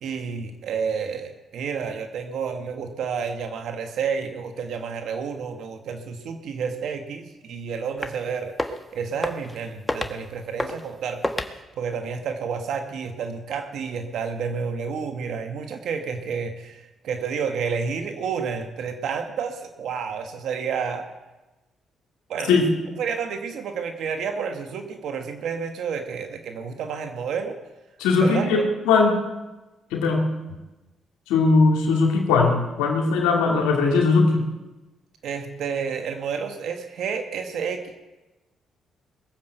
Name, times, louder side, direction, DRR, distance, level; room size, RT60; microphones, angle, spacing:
voice 1, 0.0-21.1 22.3-22.6 23.0-27.6 28.2-28.5 35.2-37.9, right 6 dB, 75° right, 6 dB, 1.4 m, -30 dB
sound 1, 8.0-8.2 8.5-8.8 9.2-9.6 9.9-10.2 10.6-10.9 11.2-11.5, left 1 dB, 15° left, 1.5 m, -28 dB
voice 2, 28.0-29.2 29.9-30.3 31.3-34.5, left 4 dB, 90° left, 0 dB, 2.3 m, -19 dB
21.0 x 7.4 x 7.9 m, 1.1 s
supercardioid pair, 60°, 0 cm